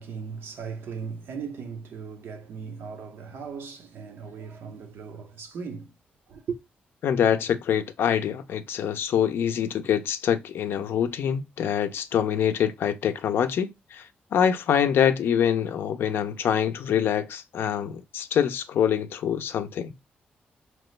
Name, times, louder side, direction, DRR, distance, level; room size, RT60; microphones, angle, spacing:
voice 1, 0.0-5.9 6.3-6.6, right 5 dB, 75° right, 0.7 m, -37 dB
voice 2, 7.0-14.0 14.3-19.9, left 9 dB, 80° left, 0.4 m, -25 dB
2.9 x 2.0 x 3.0 m
cardioid pair, 75°, 4 cm